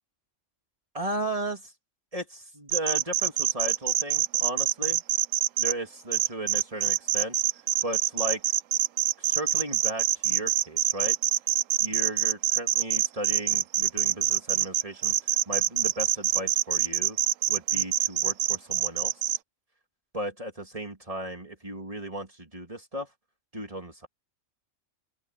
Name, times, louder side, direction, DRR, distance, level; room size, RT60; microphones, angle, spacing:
voice 1, 0.9-1.7 2.1-5.0 5.6-7.4 7.8-8.4 9.2-11.2 11.8-17.2 17.5-19.4 20.1-23.1 23.5-24.1, right 1 dB, 25° right, 3.3 m, -35 dB
sound 1, 2.7-5.7 6.1-19.4, right 13 dB, 90° right, 1.0 m, -25 dB
open air
omnidirectional pair, 1.3 m